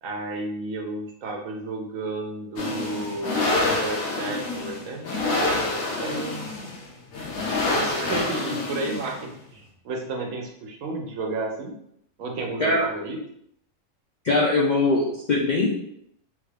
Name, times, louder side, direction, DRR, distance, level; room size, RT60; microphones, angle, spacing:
voice 1, 0.0-6.5 7.6-11.8 12.2-13.2, right 2 dB, 80° right, 2 dB, 1.1 m, -32 dB
sound 1, 2.6-9.3, left 2 dB, 85° left, 1.1 m, -27 dB
voice 2, 14.2-15.7, left 2 dB, 65° left, -3 dB, 0.4 m, -21 dB
3.3 x 2.4 x 3.3 m, 0.72 s
omnidirectional pair, 1.4 m